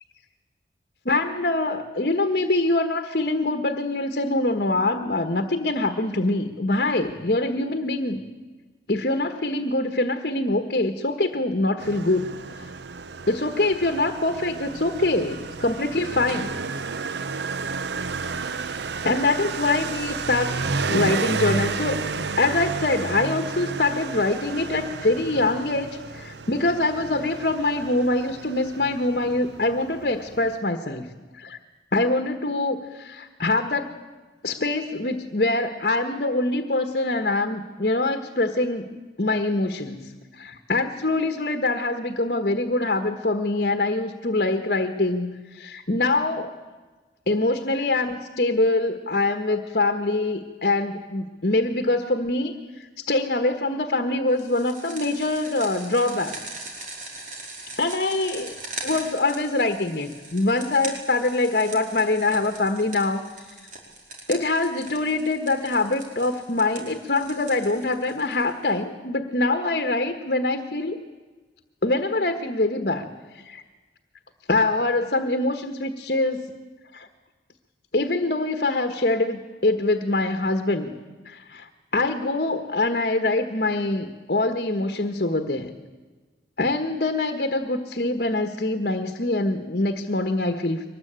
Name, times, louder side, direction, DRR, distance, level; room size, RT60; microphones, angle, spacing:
voice 1, 1.0-8.2 8.9-12.3 12.5-12.7 13.3-16.6 19.0-31.1 31.4-31.6 31.9-33.9 34.4-46.5 47.3-56.3 57.8-58.5 58.8-63.5 64.3-71.0 71.8-73.1 73.3-73.6 74.5-76.4 76.9-77.1 77.9-80.9 81.2-85.7 86.6-90.8, left 2 dB, 60° left, 7 dB, 1.4 m, -24 dB
Motorcycle, 11.8-30.6, right 4 dB, 80° right, 0.7 m, -32 dB
sound 1, 54.4-68.7, right 2 dB, 45° right, 4.8 m, -40 dB
23.5 x 20.0 x 8.9 m, 1.3 s
head